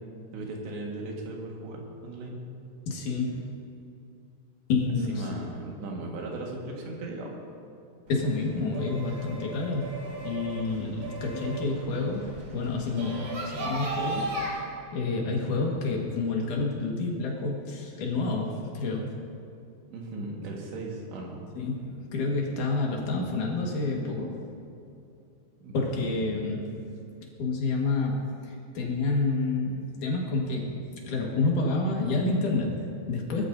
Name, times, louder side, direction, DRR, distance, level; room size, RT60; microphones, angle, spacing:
voice 1, 0.3-2.4 5.1-7.4 19.9-21.4 25.6-25.7 26.0-26.3, right 2 dB, 90° right, -1 dB, 4.0 m, -37 dB
voice 2, 2.9-3.4 4.7-5.3 8.1-14.6 14.9-19.1 21.6-24.4 25.7-26.7 27.4-30.8 31.1-33.5, left 3 dB, 55° left, -1 dB, 2.8 m, -29 dB
sound 1, 8.1-14.5, right 2 dB, 65° right, 4.0 m, -36 dB
21.0 x 12.5 x 2.7 m, 2.6 s
omnidirectional pair, 4.9 m